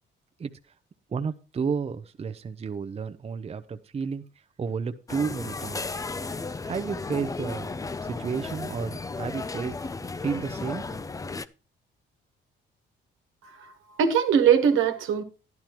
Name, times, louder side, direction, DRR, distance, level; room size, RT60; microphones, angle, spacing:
voice 1, 1.1-4.2 4.6-6.0 6.6-7.7 8.0-9.8 10.2-11.3, right 5 dB, 30° right, 0.6 m, -32 dB
sound 1, 5.1-11.5, left 3 dB, 15° left, 0.4 m, -34 dB
voice 2, 13.4-15.2, right 8 dB, 85° right, 1.3 m, -22 dB
11.5 x 10.5 x 3.0 m
cardioid pair, 90°, 20 cm